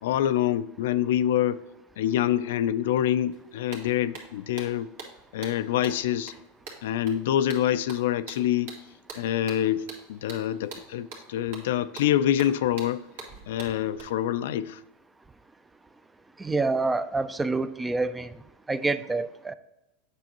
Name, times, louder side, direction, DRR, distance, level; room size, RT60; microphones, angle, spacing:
voice 1, 0.0-1.6 2.0-4.9 5.3-6.3 6.8-8.7 9.2-13.0 13.5-14.8, left 11 dB, 75° left, 0.3 m, -26 dB
sound 1, 3.3-3.4 3.7-14.0, right 4 dB, 70° right, 1.9 m, -44 dB
voice 2, 16.4-18.3 18.7-19.5, right 3 dB, 10° right, 0.4 m, -27 dB
8.0 x 6.2 x 2.9 m
supercardioid pair, 120°, 0 cm